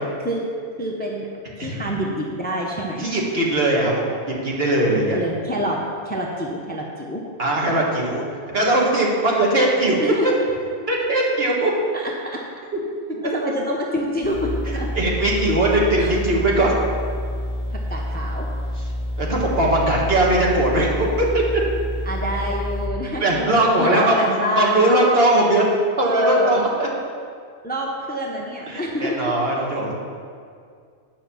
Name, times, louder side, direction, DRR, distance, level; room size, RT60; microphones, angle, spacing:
voice 1, 0.8-1.3 1.6-3.1 4.9-7.2 10.0-10.4 11.9-12.4 13.2-14.9 15.9-16.2 17.9-18.5 22.0-23.5 23.8-25.0 26.0-26.7 27.6-29.3, equal, 10° left, -1 dB, 0.8 m, -26 dB
voice 2, 3.0-4.1 4.4-5.2 7.4-8.3 8.5-10.0 10.2-10.3 10.9-11.7 15.0-16.8 19.2-21.4 23.2-24.2 24.5-26.9 28.7-29.9, right 1 dB, 55° right, -3 dB, 1.9 m, -20 dB
sound 1, 14.2-22.9, left 1 dB, 30° left, 1.1 m, -28 dB
10.0 x 5.7 x 7.0 m, 2.2 s
omnidirectional pair, 1.2 m